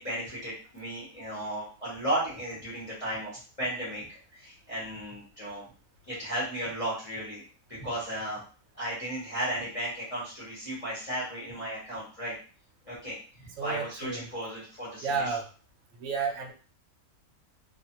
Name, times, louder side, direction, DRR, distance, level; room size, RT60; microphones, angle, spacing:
voice 1, 0.0-4.1 4.3-5.6 6.1-7.4 7.7-8.4 8.7-12.3 12.8-13.2 13.6-15.4, right 1 dB, 25° left, -8 dB, 0.9 m, -35 dB
voice 2, 13.6-14.3 15.0-15.5 16.0-16.5, right 5 dB, 60° right, 3 dB, 0.8 m, -31 dB
2.5 x 2.5 x 2.8 m, 0.38 s
omnidirectional pair, 1.5 m